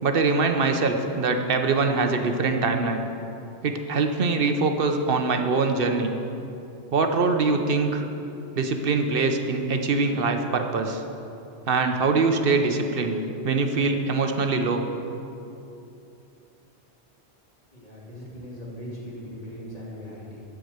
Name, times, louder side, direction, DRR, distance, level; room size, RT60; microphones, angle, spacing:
voice 1, 0.0-3.0 3.6-6.1 6.9-8.0 8.5-11.0 11.7-13.2 13.4-14.8, right 4 dB, 55° right, 5 dB, 1.0 m, -23 dB
voice 2, 17.7-20.4, equal, 35° left, -7 dB, 2.6 m, -39 dB
13.5 x 4.9 x 8.0 m, 2.8 s
omnidirectional pair, 1.2 m